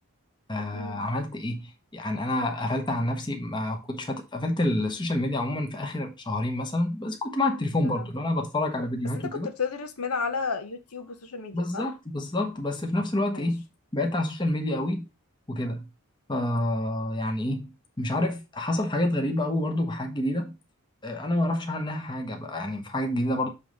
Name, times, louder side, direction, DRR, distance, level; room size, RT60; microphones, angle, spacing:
voice 1, 0.5-9.5 11.5-13.6 13.9-15.0 15.5-15.8 16.3-17.7 18.0-20.5 21.0-23.5, left 1 dB, 20° left, 1.0 m, -28 dB
voice 2, 7.6-8.1 9.1-11.9 13.3-13.5, left 5 dB, 80° left, 1.1 m, -33 dB
6.9 x 3.2 x 5.2 m
head